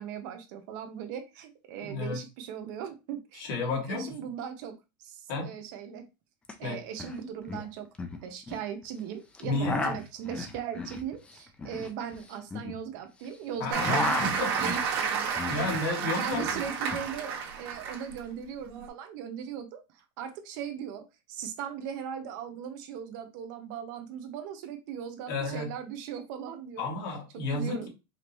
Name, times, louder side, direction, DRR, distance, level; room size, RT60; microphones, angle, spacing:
voice 1, 0.0-4.7 5.0-6.0 6.6-7.9 8.2-15.4 16.0-26.9 27.3-27.9, right 8 dB, 55° right, 0.9 m, -39 dB
voice 2, 1.8-2.2 3.3-4.3 5.3-5.5 6.6-6.8 9.4-9.9 13.6-14.5 15.5-16.4 25.3-25.7 26.8-27.9, left 3 dB, 60° left, 2.1 m, -32 dB
sound 1, 6.4-6.5 6.8-7.2 7.5-8.7 9.3-13.3 13.6-15.9 16.1-17.1, left 2 dB, 10° left, 0.4 m, -35 dB
Applause, 13.7-18.2 18.7-18.9, right 6 dB, 70° right, 1.6 m, -31 dB
5.0 x 2.8 x 3.0 m
supercardioid pair, 170°, 13 cm